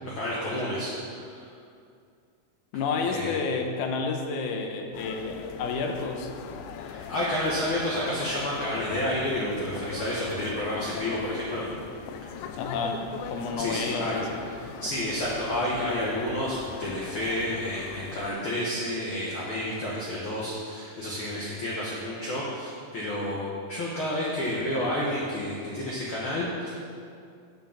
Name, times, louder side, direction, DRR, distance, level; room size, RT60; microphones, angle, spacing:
voice 1, 0.1-1.5 3.0-3.4 6.8-11.6 13.6-14.2 14.6-26.7, left 1 dB, 55° left, -6 dB, 1.5 m, -30 dB
voice 2, 2.7-6.3 12.6-14.5, left 4 dB, 75° left, 4 dB, 2.1 m, -30 dB
sound 1, 4.9-18.3, left 7 dB, 90° left, 2.4 m, -40 dB
8.6 x 6.2 x 7.1 m, 2.4 s
omnidirectional pair, 4.0 m